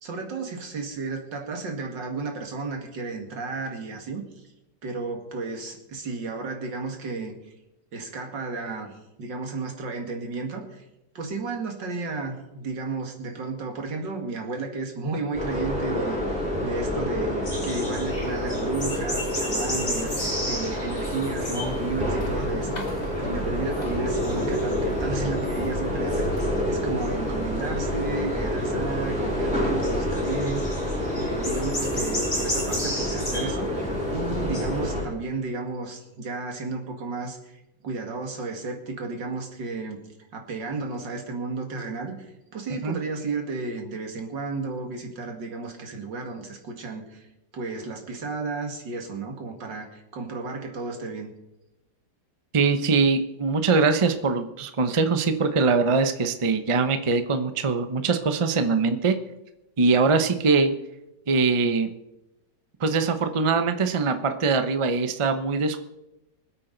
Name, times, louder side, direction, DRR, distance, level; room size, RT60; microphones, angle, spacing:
voice 1, 0.0-4.2 4.8-7.4 7.9-10.9 11.1-40.0 40.3-47.3 47.5-51.3, right 3 dB, 90° right, 3 dB, 2.6 m, -33 dB
sound 1, 15.3-35.0, equal, 5° right, 6.1 m, -28 dB
sound 2, 17.4-21.8 22.1-22.6 23.1-23.4 23.7-26.7 27.0-27.1 27.7-28.6 29.8-33.5 33.9-34.0 34.3-34.6, equal, 30° left, 6.5 m, -34 dB
sound 3, 21.4-26.5, left 3 dB, 75° left, 3.2 m, -40 dB
voice 2, 52.5-59.1 59.8-60.7 61.3-61.9 62.8-65.8, right 4 dB, 30° right, 8 dB, 0.5 m, -22 dB
25.0 x 8.3 x 4.0 m, 0.92 s
omnidirectional pair, 1.9 m